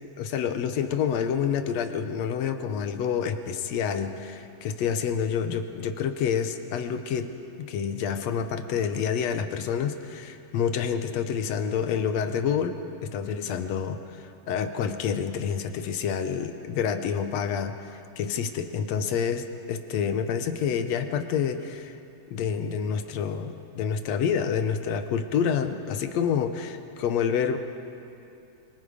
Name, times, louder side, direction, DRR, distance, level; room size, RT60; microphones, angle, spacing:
voice 1, 0.2-7.3 7.7-17.8 18.2-22.0 22.3-27.6, left 7 dB, 70° left, 8 dB, 1.9 m, -28 dB
24.5 x 23.0 x 5.1 m, 2.6 s
omnidirectional pair, 3.5 m